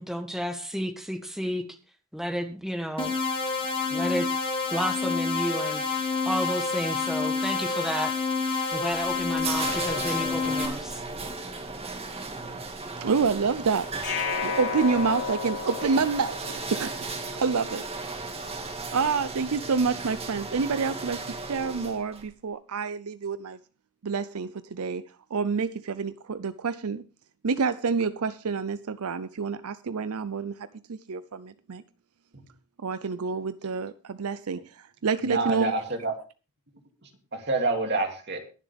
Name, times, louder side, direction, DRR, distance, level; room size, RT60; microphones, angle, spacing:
voice 1, 0.0-1.6 2.1-3.2 3.9-4.3 4.7-8.1 8.7-11.0, equal, ahead, 1.3 m, -31 dB
sound 1, 3.0-10.7, left 4 dB, 25° left, 3.3 m, -28 dB
sound 2, 8.9-22.3, right 3 dB, 25° right, 1.8 m, -36 dB
voice 2, 13.0-13.9 14.4-16.4 16.7-17.8 18.9-23.6 24.0-25.0 25.3-27.0 27.4-31.8 32.8-35.7, right 5 dB, 75° right, 0.6 m, -28 dB
sound 3, 14.0-17.1, left 5 dB, 90° left, 4.1 m, -32 dB
voice 3, 35.2-36.1 37.0-38.4, right 3 dB, 50° right, 2.6 m, -28 dB
22.0 x 7.3 x 3.4 m
head